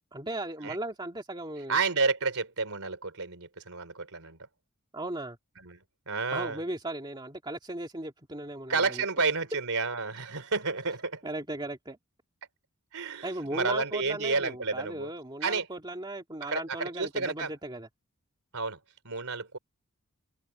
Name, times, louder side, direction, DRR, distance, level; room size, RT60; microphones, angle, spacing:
voice 1, 0.1-1.8 4.9-5.4 6.3-9.1 11.2-12.0 13.2-17.9, right 1 dB, 20° right, 2.4 m, -37 dB
voice 2, 1.6-4.4 5.6-5.8 6.1-6.6 8.7-11.2 12.9-15.1 15.4-15.7 16.4-17.5 18.5-18.8 19.1-19.6, right 4 dB, 75° right, 3.4 m, -30 dB
head